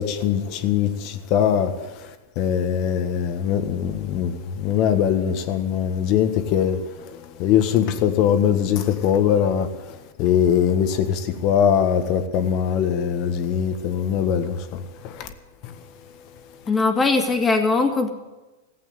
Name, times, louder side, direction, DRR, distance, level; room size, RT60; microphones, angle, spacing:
voice 1, 0.0-1.7 2.4-6.8 7.4-9.7 10.2-14.6 15.2-15.3, left 8 dB, 50° left, 1.6 m, -21 dB
voice 2, 16.7-18.1, left 3 dB, 15° left, 2.3 m, -20 dB
15.5 x 8.4 x 9.4 m
hypercardioid pair, 110°, 0 cm